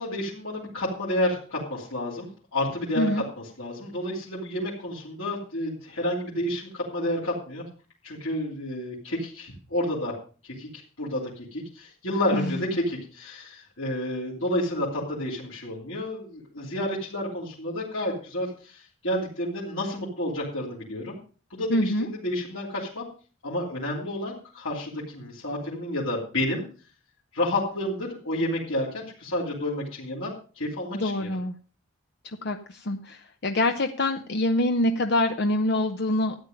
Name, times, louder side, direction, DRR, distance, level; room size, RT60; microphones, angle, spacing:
voice 1, 0.0-3.2 3.6-7.6 8.0-10.1 10.6-21.2 21.5-23.0 23.4-26.6 27.3-31.3, left 1 dB, 75° left, -5 dB, 3.2 m, -30 dB
voice 2, 21.7-22.1 30.9-31.6 32.2-36.4, left 1 dB, 55° left, 6 dB, 0.8 m, -25 dB
13.0 x 9.2 x 5.2 m, 0.38 s
head